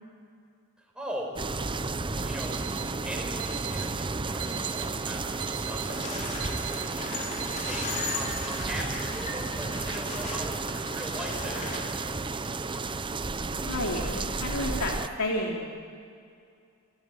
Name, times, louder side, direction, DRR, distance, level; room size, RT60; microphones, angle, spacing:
voice 1, 0.8-1.7 2.2-2.6 3.0-7.1 7.6-12.9, right 1 dB, 5° right, -1 dB, 5.4 m, -41 dB
sound 1, 1.4-15.1, right 3 dB, 20° right, 0.7 m, -32 dB
Alarm, 2.2-2.9 3.4-3.9 4.4-4.9 5.4-5.9 6.4-6.9 7.4-7.9, right 11 dB, 75° right, 4.0 m, -40 dB
sound 2, 5.8-11.8, left 3 dB, 35° left, 5.2 m, -37 dB
voice 2, 13.5-15.7, left 1 dB, 90° left, 0 dB, 2.8 m, -31 dB
29.5 x 15.5 x 9.6 m, 2.3 s
head